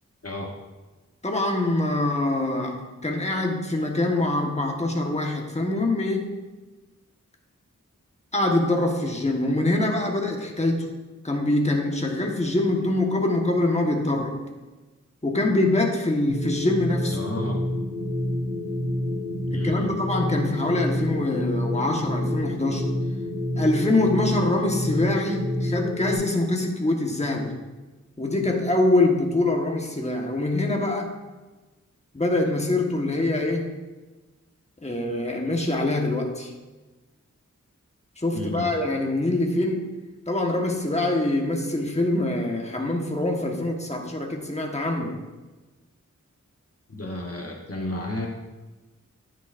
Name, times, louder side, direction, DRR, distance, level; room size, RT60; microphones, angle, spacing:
voice 1, 0.2-0.5 17.1-17.6 19.5-19.9 38.3-38.8 46.9-48.3, left 1 dB, 50° left, 0 dB, 1.1 m, -32 dB
voice 2, 1.2-6.3 8.3-10.9 11.2-14.3 15.2-17.2 19.5-22.9 23.6-27.5 28.2-31.2 32.1-33.7 34.8-36.5 38.2-39.9 40.3-45.1, left 2 dB, 20° left, 1 dB, 1.3 m, -24 dB
sound 1, 16.3-26.1, left 1 dB, 80° right, 2.9 m, -28 dB
10.5 x 9.3 x 2.6 m, 1.2 s
wide cardioid pair, 45°, 31 cm